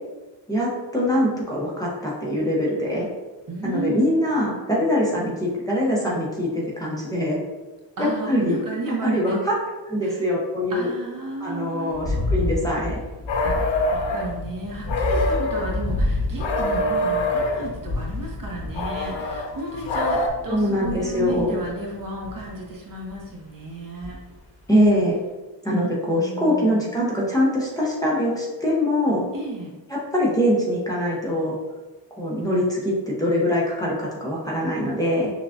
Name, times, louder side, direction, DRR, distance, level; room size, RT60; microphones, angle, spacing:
voice 1, 0.5-3.1 3.6-7.4 8.0-8.6 9.0-9.6 9.9-10.9 11.4-13.0 20.5-21.5 24.7-25.2 25.6-29.2 29.9-31.5 32.2-35.3, equal, 10° left, -6 dB, 0.7 m, -23 dB
voice 2, 3.5-4.4 8.0-9.4 10.0-10.2 10.7-12.1 13.4-24.2 26.1-26.9 29.3-29.7, right 2 dB, 50° right, -1 dB, 0.9 m, -33 dB
sound 1, 11.9-23.3 24.0-24.4 24.8-24.9, left 2 dB, 35° left, 1.1 m, -30 dB
sound 2, 13.3-14.3 14.9-15.8 16.4-17.7 18.8-20.3, left 1 dB, 85° left, 0.7 m, -24 dB
5.9 x 2.3 x 2.4 m, 1.2 s
wide cardioid pair, 130°, 44 cm